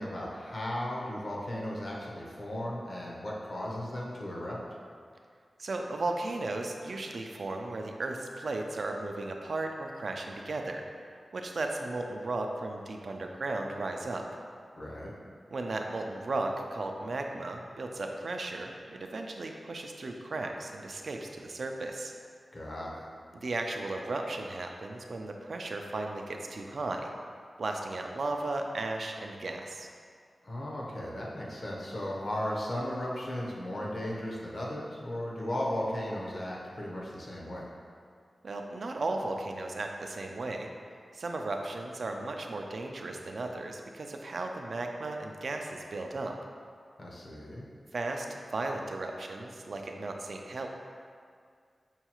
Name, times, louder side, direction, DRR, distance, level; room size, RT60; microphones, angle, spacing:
voice 1, 0.0-4.6 14.8-15.1 22.5-23.0 30.4-37.7 47.0-47.6, left 1 dB, 55° left, -4 dB, 0.7 m, -36 dB
voice 2, 5.6-10.8 11.3-14.2 15.5-22.1 23.3-27.1 27.6-29.9 38.4-40.7 41.1-46.4 47.9-50.7, right 2 dB, 65° right, 3 dB, 0.3 m, -35 dB
5.5 x 2.3 x 2.9 m, 2.1 s
wide cardioid pair, 105°, 0 cm